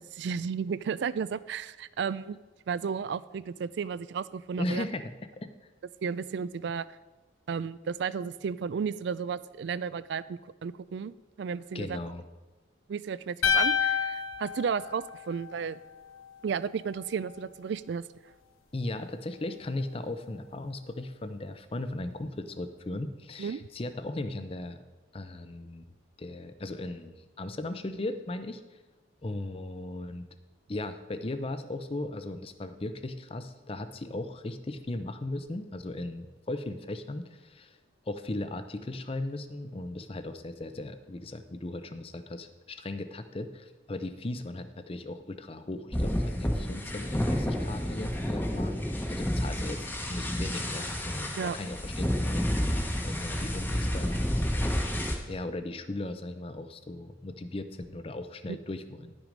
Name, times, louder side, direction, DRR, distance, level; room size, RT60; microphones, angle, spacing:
voice 1, 0.0-2.4 2.7-4.8 6.0-6.9 7.5-12.0 12.9-15.8 16.4-18.0 23.4-23.7 51.4-51.6, right 6 dB, 60° right, 17 dB, 0.3 m, -33 dB
voice 2, 4.6-5.5 11.7-12.2 18.7-24.8 25.1-25.8 26.2-28.6 29.2-30.3 30.7-37.8 38.1-52.7 53.0-54.2 55.3-59.1, left 2 dB, 30° left, 10 dB, 0.5 m, -37 dB
sound 1, 13.4-15.7, left 7 dB, 90° left, 0.8 m, -28 dB
sound 2, 45.9-55.1, equal, 10° left, 0.9 m, -30 dB
11.5 x 6.1 x 5.1 m, 1.2 s
head